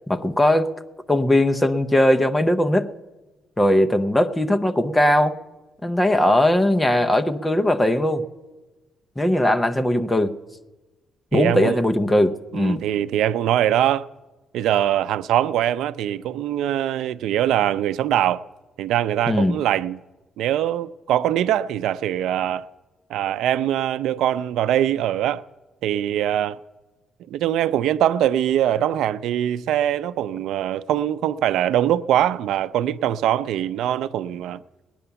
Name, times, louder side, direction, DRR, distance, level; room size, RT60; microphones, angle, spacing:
voice 1, 0.1-0.7 1.1-2.9 3.6-5.3 5.8-8.3 9.2-10.4 11.3-12.8 19.3-19.6, left 1 dB, 10° left, 0.6 m, -19 dB
voice 2, 11.3-11.8 12.5-14.1 14.5-18.4 18.8-20.0 20.4-22.7 23.1-25.4 25.8-26.6 27.3-34.6, right 11 dB, 85° right, 0.4 m, -22 dB
19.5 x 9.9 x 6.9 m
cardioid pair, 170°, 0 cm